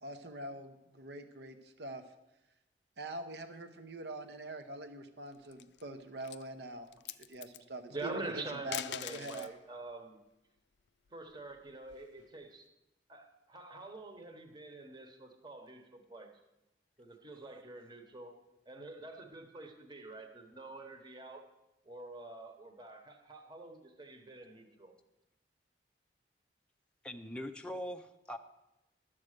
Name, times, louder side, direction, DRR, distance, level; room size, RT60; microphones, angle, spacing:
voice 1, 0.0-2.0 3.0-9.5, right 2 dB, 65° right, 8 dB, 0.8 m, -44 dB
sound 1, 5.3-5.8 6.2-6.5 6.9-7.6 8.5-9.6 11.1-12.2, left 11 dB, 75° left, 0.4 m, -43 dB
voice 2, 7.9-10.2 11.1-12.7 13.1-16.3 17.0-18.3 18.7-21.5 21.8-24.9, right 2 dB, 25° right, 5 dB, 1.1 m, -46 dB
voice 3, 27.0-28.4, equal, 5° left, 3 dB, 0.4 m, -41 dB
12.0 x 7.5 x 6.5 m, 0.95 s
head